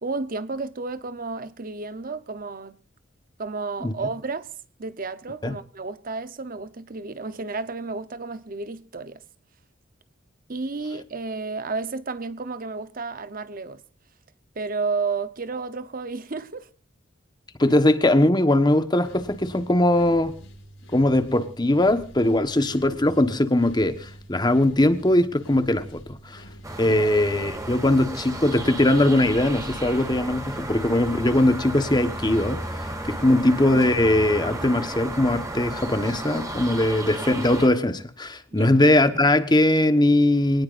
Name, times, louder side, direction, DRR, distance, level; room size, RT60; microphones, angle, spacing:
voice 1, 0.0-2.8 3.4-4.5 4.8-9.2 10.5-13.8 14.5-16.7 27.0-27.1 33.2-33.4 38.5-38.7, right 4 dB, 45° right, 0.9 m, -32 dB
voice 2, 17.6-20.4 20.9-26.4 26.8-32.6 33.1-40.6, left 1 dB, 20° left, 1.3 m, -20 dB
sound 1, 18.9-33.5, equal, 80° left, 7.0 m, -46 dB
sound 2, 26.6-37.7, right 1 dB, 15° right, 3.4 m, -33 dB
25.0 x 19.0 x 2.6 m
head